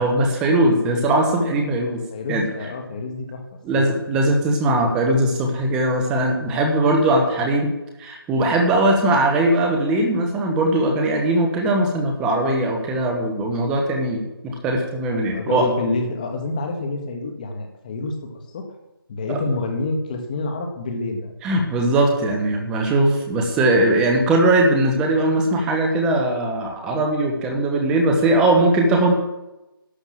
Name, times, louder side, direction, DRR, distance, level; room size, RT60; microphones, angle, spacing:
voice 1, 0.0-2.0 2.3-2.5 3.6-7.7 8.0-15.7 19.3-19.4 21.4-29.1, right 1 dB, 5° right, 2 dB, 1.0 m, -20 dB
voice 2, 2.1-3.4 3.7-3.9 15.3-18.6 19.1-21.3, left 3 dB, 20° left, 4 dB, 1.8 m, -28 dB
12.0 x 11.0 x 7.5 m, 0.99 s
figure-of-eight pair, 170°, 12 cm